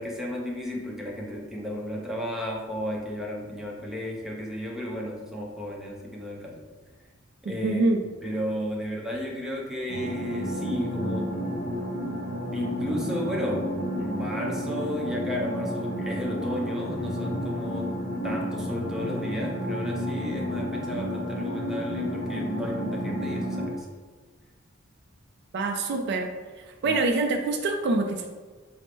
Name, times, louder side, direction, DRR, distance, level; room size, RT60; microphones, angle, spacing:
voice 1, 0.0-6.6 7.4-7.8 8.2-11.3 12.5-17.9 18.2-23.9 26.8-27.0, equal, ahead, -2 dB, 0.6 m, -33 dB
voice 2, 7.5-8.0 25.5-26.3 26.8-28.3, right 2 dB, 55° right, 4 dB, 0.3 m, -25 dB
sound 1, 9.9-23.7, equal, 40° left, 0.8 m, -31 dB
4.4 x 2.0 x 4.3 m, 1.4 s
head